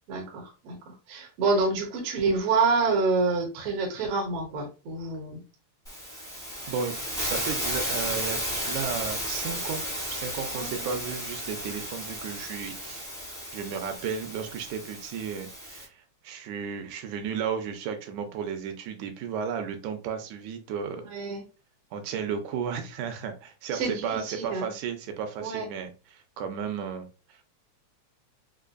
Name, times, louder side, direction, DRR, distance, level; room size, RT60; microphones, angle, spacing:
voice 1, 0.1-5.4 10.5-11.0 21.1-21.4 23.7-24.6 25.4-25.7, right 4 dB, 60° right, 1 dB, 1.8 m, -27 dB
Hiss, 5.8-15.8, equal, ahead, 0.9 m, -34 dB
voice 2, 7.2-9.8 10.1-13.1 13.5-21.0 21.9-27.4, right 7 dB, 90° right, 6 dB, 2.0 m, -34 dB
5.2 x 2.5 x 2.2 m, 0.32 s
omnidirectional pair, 3.3 m